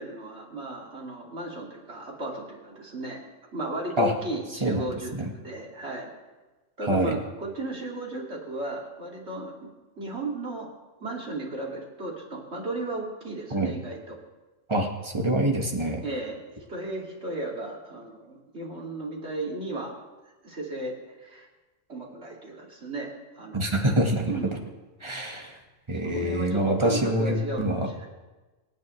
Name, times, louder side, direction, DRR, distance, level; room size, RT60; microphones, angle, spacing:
voice 1, 0.0-3.2 3.5-6.1 6.8-9.7 10.0-10.7 11.0-14.2 16.0-16.4 16.7-19.9 20.4-21.5 21.9-23.9 24.3-24.6 26.0-28.1, right 2 dB, 55° right, -2 dB, 2.8 m, -35 dB
voice 2, 4.6-5.3 6.9-7.2 13.5-13.7 14.7-16.0 23.5-24.3 25.0-25.5 25.9-27.9, right 1 dB, 20° right, 2 dB, 1.5 m, -25 dB
26.0 x 9.5 x 3.2 m, 1.2 s
omnidirectional pair, 1.3 m